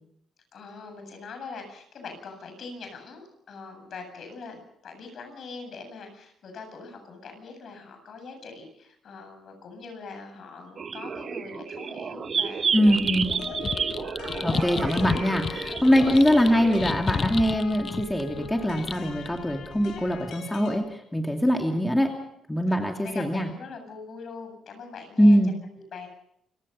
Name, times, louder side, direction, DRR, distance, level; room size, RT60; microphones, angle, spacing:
voice 1, 0.5-13.0 13.3-13.6 22.7-25.4 25.9-26.1, left 4 dB, 60° left, 5 dB, 7.6 m, -42 dB
sound 1, 10.8-16.8, right 6 dB, 45° right, 0.9 m, -31 dB
voice 2, 12.7-13.3 14.4-22.1 22.5-23.5 25.2-25.5, equal, 10° left, 2 dB, 2.6 m, -22 dB
sound 2, 12.9-20.3, left 5 dB, 40° left, 0.8 m, -33 dB
sound 3, 13.4-20.8, left 4 dB, 80° left, 4.5 m, -41 dB
29.0 x 16.0 x 5.6 m, 0.74 s
cardioid pair, 90°, 0 cm